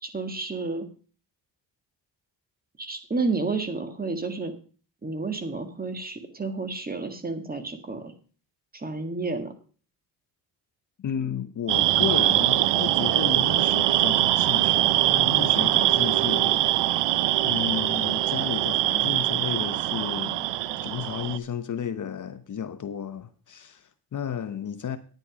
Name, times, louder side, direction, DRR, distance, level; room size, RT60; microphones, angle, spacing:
voice 1, 0.0-0.9 2.8-4.5 5.0-8.1 8.7-9.5, right 3 dB, 20° right, 1.8 m, -31 dB
voice 2, 11.0-16.6 17.4-20.5 20.8-25.0, left 8 dB, 45° left, 0.9 m, -33 dB
sound 1, 11.7-21.4, right 14 dB, 75° right, 0.7 m, -23 dB
9.7 x 9.1 x 5.0 m
cardioid pair, 90°, 43 cm